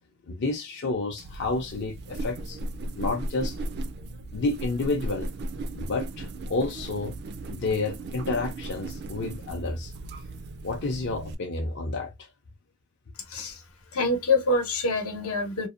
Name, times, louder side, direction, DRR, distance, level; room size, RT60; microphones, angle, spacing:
voice 1, 0.3-2.6 3.0-3.6 4.3-5.3 5.8-7.1 7.5-9.9 10.6-12.3, left 3 dB, 55° left, 0.5 m, -30 dB
sound 1, 1.2-11.3, right 2 dB, 50° right, 0.4 m, -36 dB
voice 2, 13.3-13.6 13.9-15.7, left 2 dB, 85° left, 0.8 m, -25 dB
2.6 x 2.1 x 2.4 m
head